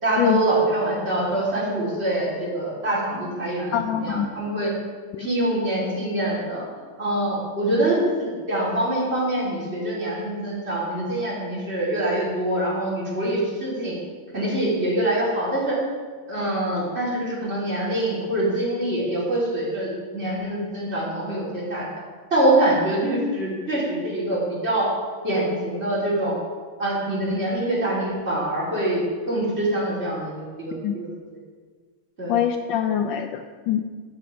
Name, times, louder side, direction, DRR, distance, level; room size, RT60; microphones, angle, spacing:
voice 1, 0.0-4.7 5.2-6.6 7.0-13.9 14.3-15.8 16.3-21.8 22.3-24.9 25.2-26.3 26.8-31.1 32.2-32.3, right 1 dB, 30° right, -7 dB, 3.7 m, -24 dB
voice 2, 3.7-4.3 5.1-5.3 13.3-13.4 30.8-31.0 32.3-33.8, left 9 dB, 75° left, 7 dB, 1.2 m, -24 dB
12.0 x 7.7 x 5.1 m, 1.5 s
omnidirectional pair, 2.3 m